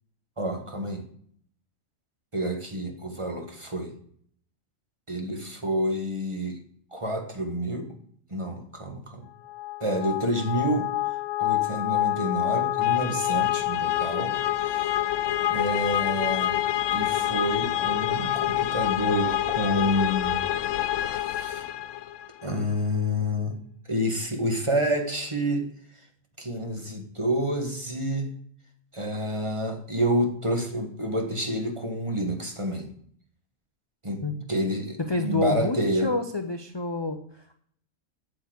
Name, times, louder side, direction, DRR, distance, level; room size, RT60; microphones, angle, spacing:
voice 1, 0.4-1.0 2.3-3.9 5.1-6.6 6.9-7.9 8.3-9.3 9.8-10.9 11.4-14.3 14.6-15.0 15.5-16.5 16.9-20.4 21.0-21.7 22.4-23.5 23.9-25.7 26.4-28.3 28.9-32.9 34.0-34.2 34.5-36.1, equal, 20° right, 3 dB, 1.6 m, -28 dB
sound 1, 9.5-22.3, left 13 dB, 70° left, 0.9 m, -27 dB
voice 2, 35.0-37.6, left 3 dB, 25° left, 6 dB, 0.6 m, -28 dB
8.6 x 7.1 x 7.9 m, 0.63 s
omnidirectional pair, 1.4 m